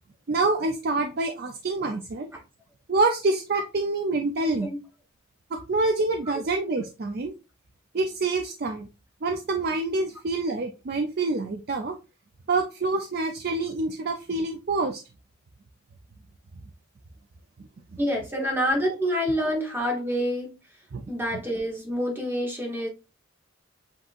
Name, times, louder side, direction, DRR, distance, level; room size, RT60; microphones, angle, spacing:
voice 1, 0.3-2.3 2.9-4.7 5.5-7.3 7.9-8.9 9.2-11.9 12.5-15.0 18.3-18.5 20.9-21.0 21.3-21.4, right 3 dB, 50° right, 0.4 m, -26 dB
voice 2, 18.0-20.5 21.1-22.9, equal, 10° right, 1.0 m, -27 dB
7.7 x 2.7 x 2.5 m
head